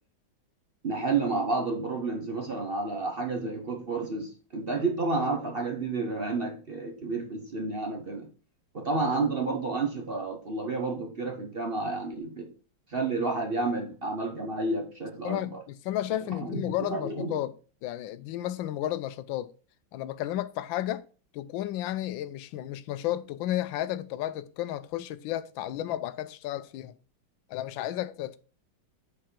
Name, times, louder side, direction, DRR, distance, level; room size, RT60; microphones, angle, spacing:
voice 1, 0.8-8.3 8.7-12.5 12.9-15.6 16.4-16.6 16.9-17.4, right 3 dB, 40° right, 0.9 m, -30 dB
voice 2, 15.2-17.5 17.8-19.5 19.9-21.0 21.3-26.9 27.5-28.4, left 13 dB, 90° left, 1.3 m, -32 dB
7.5 x 4.7 x 4.3 m
omnidirectional pair, 2.0 m